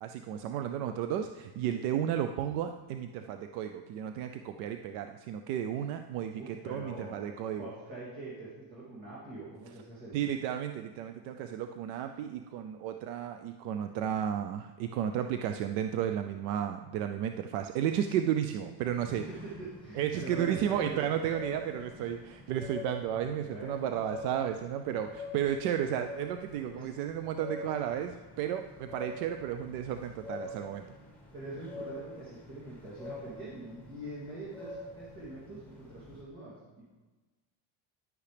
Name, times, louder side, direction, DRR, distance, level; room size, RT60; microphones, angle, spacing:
voice 1, 0.0-7.7 10.1-19.2 20.0-30.9, right 9 dB, 80° right, 8 dB, 0.6 m, -33 dB
voice 2, 6.3-7.2 7.6-10.2 19.8-21.0 23.5-24.0 26.7-26.9 31.3-36.9, right 2 dB, 45° right, -9 dB, 2.8 m, -44 dB
sound 1, 18.8-36.2, left 2 dB, 5° left, 1.9 m, -46 dB
11.0 x 8.3 x 3.4 m, 1.2 s
cardioid pair, 150°, 45 cm